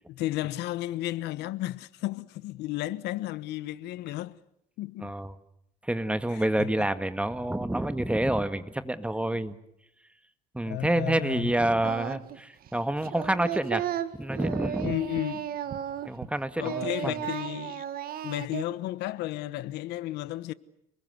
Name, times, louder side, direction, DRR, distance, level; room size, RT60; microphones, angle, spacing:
voice 1, 0.1-4.4 4.8-5.1 6.3-6.9 9.3-9.4 10.7-11.5 14.8-15.5 16.6-17.8 18.2-20.5, left 15 dB, 85° left, 1.2 m, -33 dB
voice 2, 5.0-5.3 5.8-9.6 10.5-13.9 14.2-14.9 16.1-17.2, right 1 dB, 5° right, 1.8 m, -28 dB
Singing, 11.8-12.4 12.7-16.3 16.6-18.6, right 10 dB, 60° right, 1.8 m, -34 dB
29.0 x 21.0 x 8.0 m
cardioid pair, 110°, 17 cm